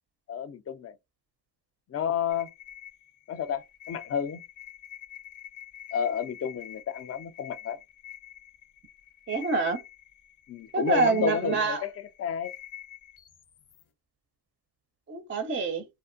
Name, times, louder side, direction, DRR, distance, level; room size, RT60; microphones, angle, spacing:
voice 1, 0.3-0.9 1.9-2.5 3.3-4.4 5.9-7.8 10.5-11.9 12.2-12.5, left 8 dB, 35° left, 0.4 m, -31 dB
sound 1, 2.3-13.8, left 11 dB, 80° left, 0.8 m, -47 dB
voice 2, 9.3-9.8 10.7-11.8 15.1-15.8, right 4 dB, 25° right, 0.4 m, -26 dB
2.5 x 2.1 x 2.5 m
supercardioid pair, 55°, 47 cm